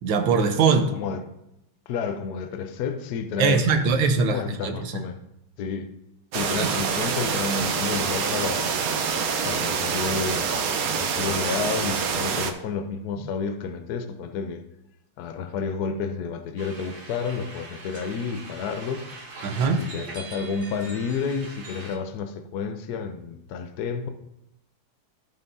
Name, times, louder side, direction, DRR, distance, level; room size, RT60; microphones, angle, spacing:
voice 1, 0.0-0.9 3.4-5.0 6.6-6.7 19.4-19.8, right 5 dB, 85° right, 6 dB, 1.7 m, -22 dB
voice 2, 1.9-4.0 4.3-5.2 5.6-5.9 6.3-8.7 9.4-10.5 10.9-14.6 15.2-19.1 19.8-24.1, left 5 dB, 65° left, 7 dB, 1.1 m, -30 dB
sound 1, 6.3-12.5, right 6 dB, 60° right, 1.1 m, -26 dB
sound 2, 16.6-22.0, right 3 dB, 35° right, 0.9 m, -42 dB
15.0 x 5.5 x 2.7 m, 0.84 s
omnidirectional pair, 2.1 m